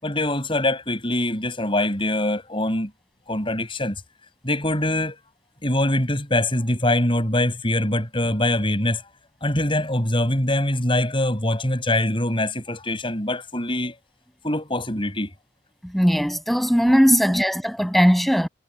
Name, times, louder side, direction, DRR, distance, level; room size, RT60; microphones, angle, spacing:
voice 1, 0.0-2.9 3.3-4.0 4.4-5.2 5.6-9.0 9.4-13.9 14.4-15.3 17.1-17.2, left 1 dB, 25° left, 6.4 m, -23 dB
voice 2, 15.8-18.5, equal, ahead, 7.9 m, -19 dB
head